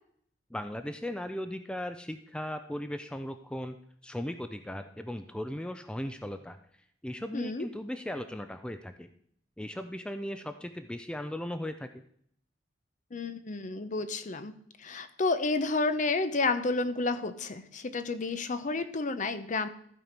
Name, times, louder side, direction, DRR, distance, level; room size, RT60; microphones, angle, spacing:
voice 1, 0.5-3.8 4.0-6.6 7.0-9.1 9.6-11.9, left 1 dB, 5° left, 8 dB, 0.4 m, -37 dB
voice 2, 7.3-7.7 13.1-14.5 14.8-19.7, left 3 dB, 45° left, 11 dB, 0.7 m, -30 dB
14.5 x 4.8 x 5.2 m, 0.66 s
head